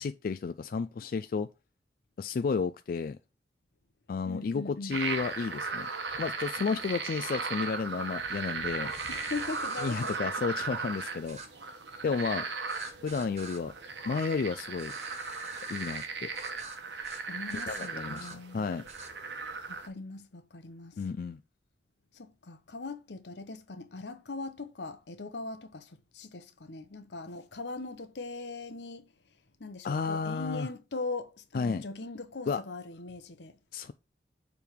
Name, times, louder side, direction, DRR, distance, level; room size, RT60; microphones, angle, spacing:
voice 1, 0.0-1.5 2.2-3.2 4.1-5.9 6.2-8.9 9.8-11.4 12.0-12.5 13.0-13.7 14.0-14.9 15.7-16.3 17.5-18.3 18.5-18.9 21.0-21.4 29.8-30.7 31.5-31.8 32.5-32.6 33.7-33.9, left 5 dB, 55° left, 0.3 m, -32 dB
voice 2, 4.3-5.0 9.1-10.3 17.3-18.7 19.7-21.0 22.1-29.0 29.6-33.6, left 3 dB, 80° left, 0.9 m, -40 dB
sound 1, 4.9-19.9, right 4 dB, 90° right, 1.2 m, -37 dB
sound 2, 8.9-10.2 11.3-11.5 12.7-13.6 14.8-16.1 16.4-16.8 17.0-17.2 17.5-18.4 18.9-19.1, right 3 dB, 40° right, 1.4 m, -44 dB
6.9 x 3.5 x 4.5 m
head